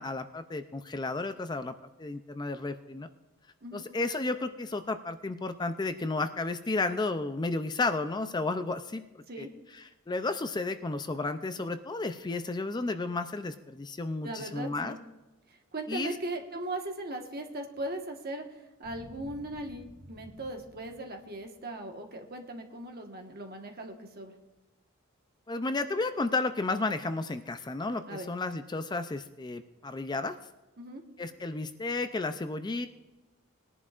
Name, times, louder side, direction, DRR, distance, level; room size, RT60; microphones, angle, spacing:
voice 1, 0.0-1.7 2.0-3.1 3.7-9.0 9.4-9.5 9.7-15.0 15.9-16.2 25.5-30.4 31.2-32.9, left 3 dB, 20° left, 9 dB, 0.4 m, -32 dB
voice 2, 14.2-15.0 15.7-18.4 18.8-24.3 28.1-28.3 30.8-31.0, right 1 dB, 45° right, 3 dB, 1.4 m, -38 dB
sound 1, 18.8-21.7 22.0-22.1, equal, 75° right, 2.4 m, -52 dB
20.0 x 11.0 x 2.5 m, 1.1 s
head